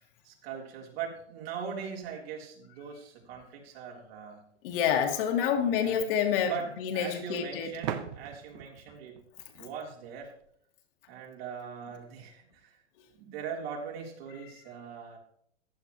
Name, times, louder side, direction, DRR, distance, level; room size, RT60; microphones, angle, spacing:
voice 1, 0.2-4.5 5.4-6.1 6.4-9.2 9.6-10.3 11.1-12.8 13.1-15.2, right 6 dB, 55° right, -1 dB, 3.6 m, -41 dB
voice 2, 4.6-7.7, left 8 dB, 50° left, 3 dB, 2.1 m, -28 dB
sound 1, 4.8-4.9 7.8-10.5, right 10 dB, 40° right, 1.2 m, -40 dB
15.0 x 11.0 x 3.1 m, 0.66 s
hypercardioid pair, 130°, 35 cm